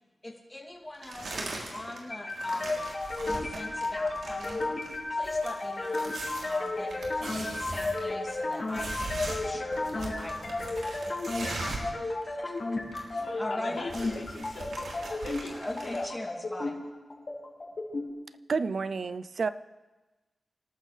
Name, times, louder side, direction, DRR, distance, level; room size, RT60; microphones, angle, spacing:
voice 1, 0.2-2.9 3.2-4.7 5.1-6.1 6.4-11.8 12.0-12.6 13.1-13.9 15.0-15.2 15.5-16.8, left 1 dB, 15° left, 0 dB, 2.7 m, -41 dB
sound 1, 1.0-2.0 2.3-12.0 12.2-12.3 12.6-13.3 13.6-16.0, right 2 dB, 85° right, 3.1 m, -40 dB
sound 2, 2.1-18.1, left 2 dB, 50° left, 5.7 m, -33 dB
voice 2, 13.2-16.1, left 3 dB, 75° left, -3 dB, 4.0 m, -41 dB
voice 3, 18.5-19.5, right 4 dB, 65° right, 14 dB, 0.5 m, -30 dB
27.0 x 13.0 x 3.3 m, 1.2 s
wide cardioid pair, 80°, 0 cm